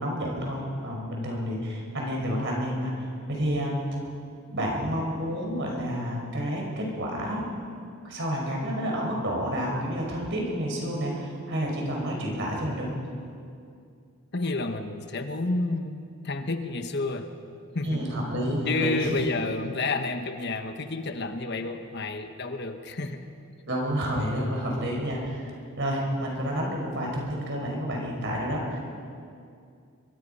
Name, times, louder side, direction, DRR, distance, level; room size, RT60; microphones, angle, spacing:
voice 1, 0.0-3.8 4.5-7.5 8.0-12.9 17.8-19.3 23.7-28.8, equal, 55° right, -1 dB, 5.3 m, -29 dB
voice 2, 14.3-17.3 17.7-18.1 18.6-23.3, left 2 dB, 50° left, 7 dB, 1.2 m, -30 dB
24.0 x 22.5 x 5.6 m, 2.4 s
head